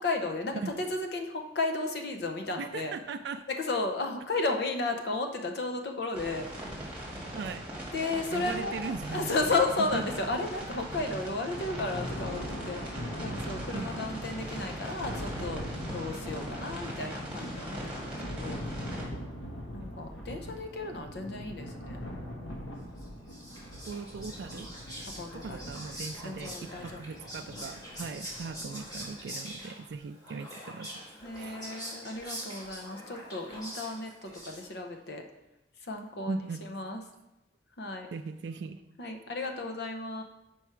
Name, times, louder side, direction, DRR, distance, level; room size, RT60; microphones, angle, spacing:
voice 1, 0.0-3.0 3.5-6.5 7.9-12.8 13.2-18.6 19.7-22.0 25.0-25.6 26.2-27.2 27.5-27.6 31.1-35.2 35.8-37.0 37.8-38.1 39.0-40.2, left 3 dB, 60° left, 4 dB, 0.7 m, -34 dB
voice 2, 2.6-3.4 7.3-7.6 8.3-9.3 9.9-10.0 13.7-14.3 23.8-24.7 25.3-30.9 31.3-31.7 36.3-36.6 38.1-38.8, right 4 dB, 65° right, 7 dB, 0.3 m, -39 dB
sound 1, 6.1-19.0, equal, 10° right, 1.5 m, -40 dB
Thunder, 11.5-29.2, equal, 85° left, 1.1 m, -41 dB
Whispering, 23.0-34.9, equal, 20° left, 1.8 m, -44 dB
6.0 x 4.6 x 4.5 m, 0.93 s
head